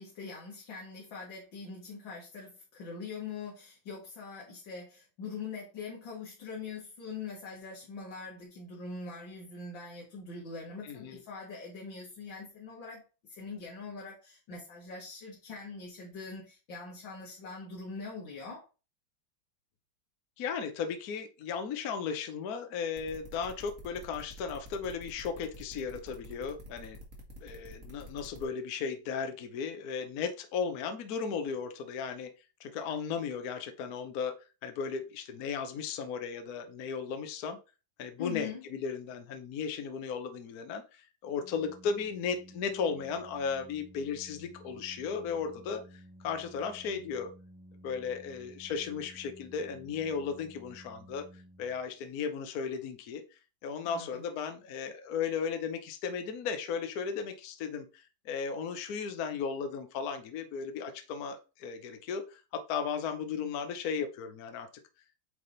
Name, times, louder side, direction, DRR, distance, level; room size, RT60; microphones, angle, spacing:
voice 1, 0.0-13.0 13.3-18.7 38.2-38.6 53.8-54.2, left 4 dB, 75° left, -4 dB, 2.5 m, -43 dB
voice 2, 10.8-11.2 20.4-27.0 27.4-32.3 32.6-34.3 34.6-37.6 38.0-47.3 47.8-51.2 51.6-53.2 53.6-64.7, left 6 dB, 60° left, 8 dB, 1.2 m, -35 dB
sound 1, 23.0-28.4, equal, 45° right, 2.1 m, -48 dB
Organ, 41.3-52.1, equal, 5° right, 1.0 m, -54 dB
8.5 x 3.5 x 4.0 m, 0.32 s
omnidirectional pair, 2.1 m